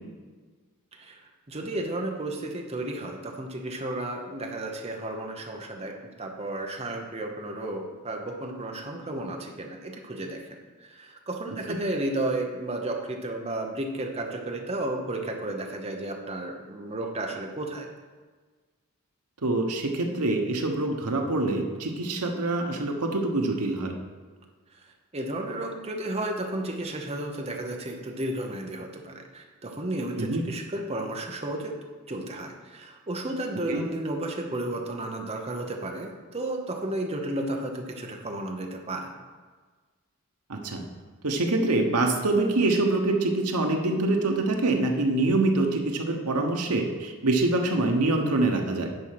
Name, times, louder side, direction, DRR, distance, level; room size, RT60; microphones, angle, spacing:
voice 1, 0.9-10.5 10.8-17.9 24.7-24.9 25.1-31.8 32.1-39.1, right 1 dB, 30° right, 2 dB, 0.9 m, -33 dB
voice 2, 19.4-23.9 30.2-30.4 33.7-33.8 40.5-40.8 41.2-48.9, right 2 dB, 90° right, 3 dB, 1.1 m, -25 dB
9.6 x 4.5 x 5.9 m, 1.4 s
head